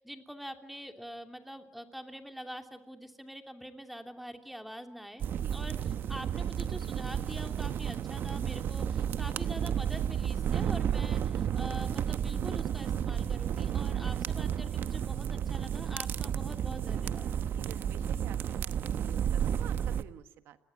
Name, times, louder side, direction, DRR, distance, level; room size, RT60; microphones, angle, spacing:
voice 1, 0.0-5.2 5.5-17.4, equal, ahead, 5 dB, 2.9 m, -45 dB
sound 1, 5.2-20.0, right 9 dB, 60° right, 1.0 m, -32 dB
voice 2, 17.6-20.6, right 11 dB, 85° right, 10 dB, 1.5 m, -50 dB
29.5 x 22.0 x 8.8 m, 0.85 s
cardioid pair, 110°, 4 cm